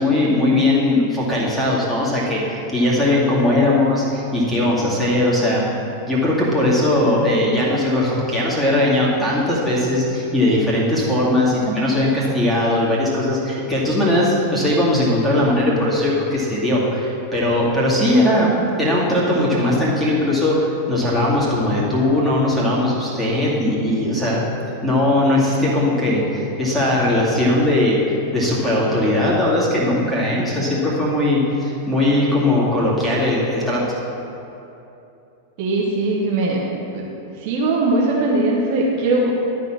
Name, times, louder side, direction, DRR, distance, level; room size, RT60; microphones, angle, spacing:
voice 1, 0.0-5.6 6.1-18.5 18.8-24.4 24.8-28.0 28.3-33.8, left 1 dB, ahead, -8 dB, 2.4 m, -19 dB
voice 2, 35.6-36.6 36.9-37.1 37.4-39.3, right 2 dB, 45° right, -3 dB, 1.2 m, -20 dB
12.0 x 4.2 x 6.2 m, 2.8 s
figure-of-eight pair, 90°, 0 cm